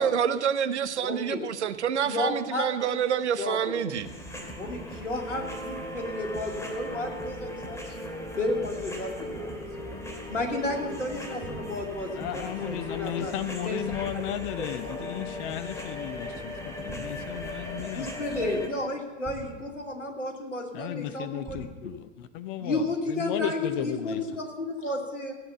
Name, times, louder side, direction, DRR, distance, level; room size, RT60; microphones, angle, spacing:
voice 1, 0.0-4.1, right 8 dB, 70° right, 12 dB, 0.9 m, -27 dB
voice 2, 1.0-1.4 2.1-3.0 3.4-3.7 4.6-8.1 8.4-9.7 10.3-13.3 13.6-13.8 14.6-14.9 17.9-21.7 22.6-25.3, left 2 dB, 80° left, 1 dB, 2.5 m, -32 dB
sound 1, 3.9-18.7, left 1 dB, 10° left, 2.5 m, -38 dB
sound 2, 11.4-11.9 13.9-14.7 16.9-17.4 19.2-20.1 21.4-22.0, right 4 dB, 15° right, 2.1 m, -45 dB
voice 3, 12.1-18.1 20.7-24.3, left 12 dB, 45° left, 13 dB, 0.7 m, -34 dB
16.0 x 8.7 x 6.8 m, 1.2 s
figure-of-eight pair, 90°, 36 cm